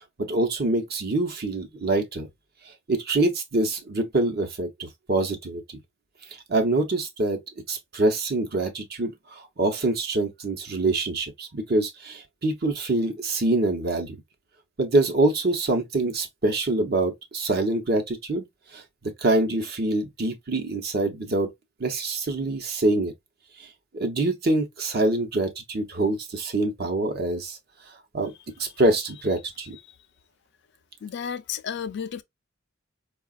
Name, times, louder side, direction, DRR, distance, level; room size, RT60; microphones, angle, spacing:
voice 1, 0.2-2.3 2.9-5.6 6.5-7.4 7.7-14.2 14.8-18.5 18.7-18.8 19.2-21.5 21.8-23.1 23.9-27.6 28.1-28.3 28.6-29.8, right 2 dB, 50° right, 0.8 m, -25 dB
voice 2, 31.0-32.2, left 7 dB, 55° left, 0.4 m, -32 dB
4.7 x 2.3 x 2.4 m
head